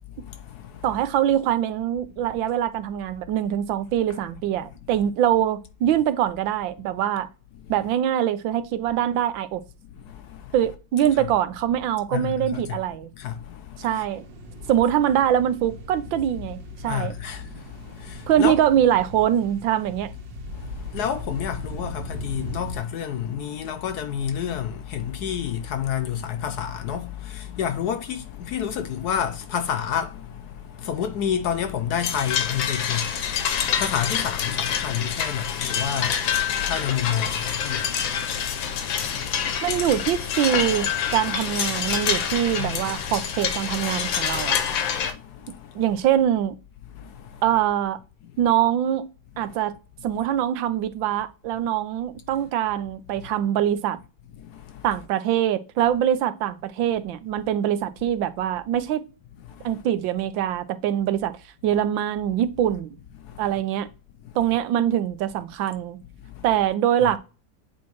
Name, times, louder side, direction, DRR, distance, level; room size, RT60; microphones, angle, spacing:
voice 1, 0.1-1.0 7.6-7.7 9.8-10.5 11.2-11.3 12.1-12.8 13.1-14.1 14.5-14.7 16.8-18.6 20.4-39.8 42.5-42.8 44.9-45.8 46.9-47.4 48.2-48.3 49.5-49.6 53.2-53.3 54.3-54.8 59.4-59.8 63.2-63.5 64.2-64.4 66.2-66.5, left 8 dB, 70° left, 1.0 m, -30 dB
voice 2, 0.8-7.3 7.7-9.6 10.5-13.1 13.8-14.2 14.7-17.1 18.3-20.1 39.6-44.6 45.7-46.6 47.4-48.0 48.4-49.0 49.4-49.7 50.0-54.0 54.8-59.0 59.6-61.3 61.6-62.9 63.4-63.9 64.3-66.0 66.4-67.2, right 10 dB, 85° right, 1.4 m, -23 dB
sound 1, 14.1-22.8, left 1 dB, 70° right, 1.8 m, -38 dB
sound 2, 32.0-45.1, left 8 dB, 85° left, 1.6 m, -26 dB
8.3 x 4.4 x 3.0 m
omnidirectional pair, 2.1 m